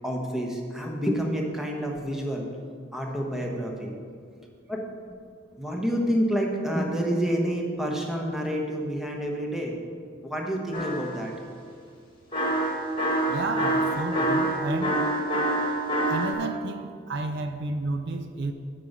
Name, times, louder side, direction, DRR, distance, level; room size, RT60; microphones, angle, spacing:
voice 1, 0.0-2.5 2.9-4.0 4.7-4.8 5.6-9.8 10.2-11.3, equal, ahead, 0 dB, 1.1 m, -28 dB
sound 1, 10.7-11.3 12.3-16.3, right 1 dB, 25° left, 1.7 m, -26 dB
voice 2, 13.3-15.1 16.1-18.5, right 3 dB, 60° right, 8 dB, 0.5 m, -31 dB
8.5 x 5.4 x 7.2 m, 2.1 s
head